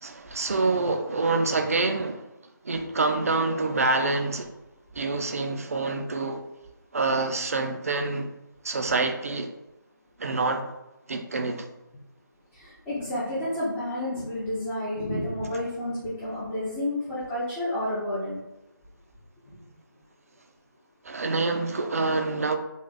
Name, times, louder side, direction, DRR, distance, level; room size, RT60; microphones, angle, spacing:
voice 1, 0.0-2.3 2.6-4.5 4.9-6.5 6.9-8.3 8.6-9.5 10.2-10.7 11.1-11.7 21.0-22.6, right 3 dB, 45° right, 6 dB, 0.5 m, -26 dB
voice 2, 12.5-18.4, left 1 dB, 10° left, -12 dB, 0.5 m, -30 dB
3.5 x 2.5 x 3.7 m, 0.97 s
figure-of-eight pair, 155°, 11 cm